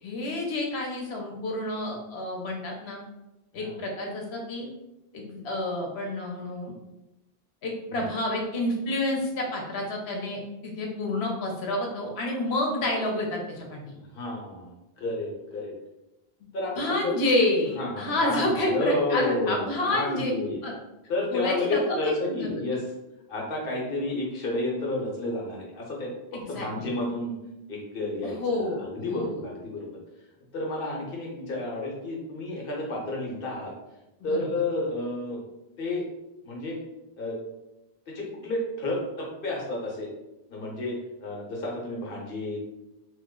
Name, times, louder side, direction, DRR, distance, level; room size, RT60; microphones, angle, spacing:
voice 1, 0.0-3.0 3.5-4.7 5.1-6.7 7.6-13.8 16.8-20.3 20.6-20.7 21.3-22.6 26.3-26.9 28.2-29.4 34.3-34.4, left 1 dB, 85° left, 0 dB, 1.0 m, -29 dB
voice 2, 13.9-15.7 16.5-17.1 17.8-20.7 21.1-22.9 23.3-27.3 27.7-30.0 30.5-33.7 34.2-35.4 35.8-36.0 36.4-36.8 37.2-37.4 38.1-40.1 40.5-42.6, left 2 dB, 60° left, -2 dB, 1.0 m, -31 dB
3.0 x 2.0 x 3.6 m, 0.96 s
omnidirectional pair, 1.0 m